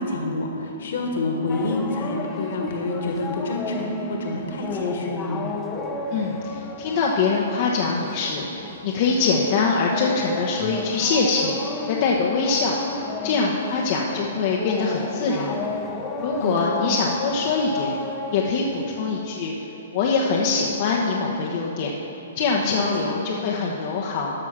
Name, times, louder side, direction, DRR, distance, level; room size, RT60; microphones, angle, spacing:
voice 1, 0.0-5.4 16.4-16.7 22.7-23.1, left 2 dB, 60° left, 1 dB, 1.8 m, -28 dB
sound 1, 1.5-19.2, left 4 dB, 20° left, 0.8 m, -34 dB
voice 2, 6.1-8.5 8.8-11.5 11.9-12.7 13.2-15.5 16.2-18.0 18.3-19.6 19.9-21.9 22.3-24.3, left 4 dB, 45° left, -2 dB, 1.0 m, -23 dB
13.0 x 6.0 x 6.0 m, 2.9 s
figure-of-eight pair, 120°, 0 cm